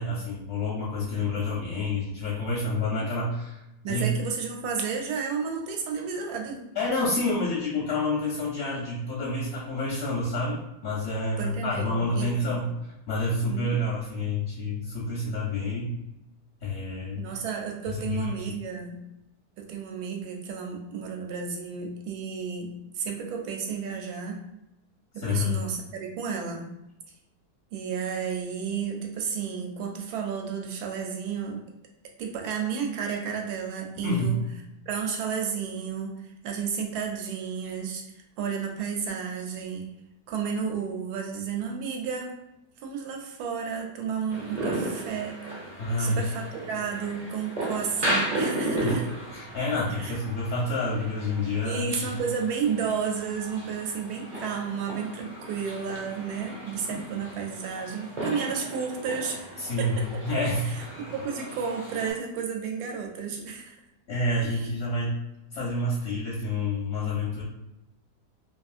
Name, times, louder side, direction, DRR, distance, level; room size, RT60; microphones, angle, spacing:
voice 1, 0.0-3.6 3.9-4.1 6.7-15.9 16.6-17.3 17.9-18.3 25.2-25.6 34.0-34.4 45.8-46.2 48.8-49.0 49.3-52.2 59.6-60.8 64.1-65.2 65.5-67.4, left 2 dB, 65° left, -5 dB, 0.7 m, -28 dB
voice 2, 3.8-6.6 11.4-12.6 13.5-13.8 17.2-19.0 19.6-24.4 25.1-26.7 27.7-31.6 32.2-34.4 34.9-38.0 38.4-39.9 40.3-42.3 42.8-45.4 46.0-48.9 49.9-50.2 51.6-59.5 59.8-60.2 61.0-63.7 64.4-64.6, right 6 dB, 75° right, 2 dB, 1.1 m, -32 dB
sound 1, 44.3-62.1, right 1 dB, 35° right, 0.7 m, -35 dB
2.8 x 2.6 x 2.4 m, 0.89 s
omnidirectional pair, 1.8 m